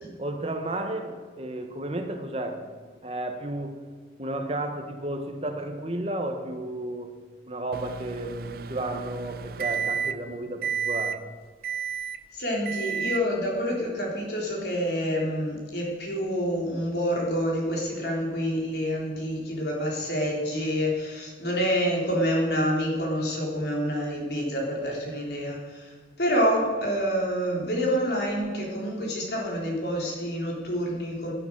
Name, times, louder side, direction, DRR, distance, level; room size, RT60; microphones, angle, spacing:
voice 1, 0.2-2.6 3.0-3.8 4.2-7.2 7.5-11.2, right 1 dB, 35° right, 6 dB, 1.2 m, -32 dB
Microwave oven, 7.7-10.3 10.6-11.2 11.6-12.2 12.6-13.3, right 7 dB, 55° right, 0.5 m, -31 dB
voice 2, 12.3-25.9 26.2-31.3, equal, 65° left, -2 dB, 3.7 m, -27 dB
11.0 x 10.5 x 7.5 m, 1.5 s
head